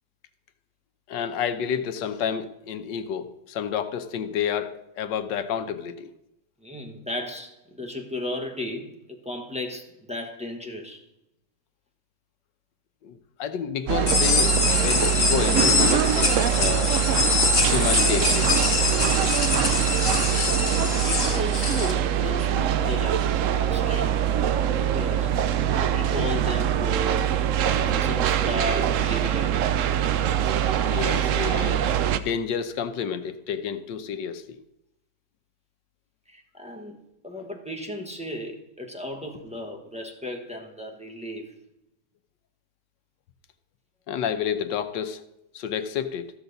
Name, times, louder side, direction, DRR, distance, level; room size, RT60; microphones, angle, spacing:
voice 1, 1.1-6.1 13.0-16.9 17.6-18.6 30.9-31.8 32.1-34.6 44.1-45.2 45.5-46.3, left 8 dB, 75° left, 1.4 m, -30 dB
voice 2, 6.6-11.0 20.3-20.5 20.8-23.3 23.5-24.2 24.9-25.3 25.8-27.4 27.8-29.6 36.3-41.6, left 1 dB, 5° right, 0.8 m, -35 dB
sound 1, 13.9-32.2, right 10 dB, 80° right, 0.7 m, -23 dB
sound 2, 14.1-21.9, left 4 dB, 55° left, 2.2 m, -24 dB
14.5 x 7.1 x 4.0 m
omnidirectional pair, 1.9 m